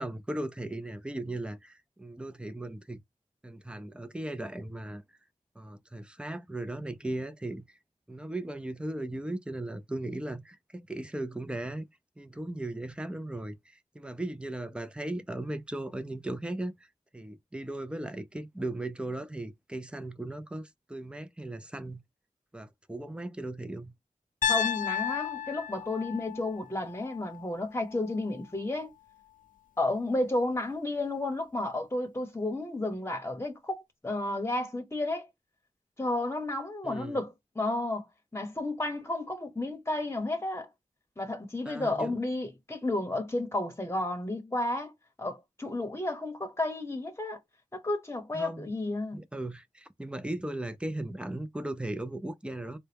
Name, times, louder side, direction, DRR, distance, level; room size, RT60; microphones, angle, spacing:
voice 1, 0.0-3.0 3.4-5.0 5.6-7.6 8.1-11.8 12.2-16.9 17.1-22.0 22.5-23.9 36.8-37.2 41.7-42.2 48.3-48.6 49.1-52.8, right 1 dB, 10° right, 0.5 m, -37 dB
Piano, 24.4-28.5, left 8 dB, 80° left, 0.4 m, -34 dB
voice 2, 24.5-28.9 29.8-35.3 36.0-38.1 38.3-40.7 41.2-44.9 45.2-47.4 47.7-49.2, left 2 dB, 20° left, 1.0 m, -32 dB
3.9 x 2.2 x 3.4 m
wide cardioid pair, 70°, 14 cm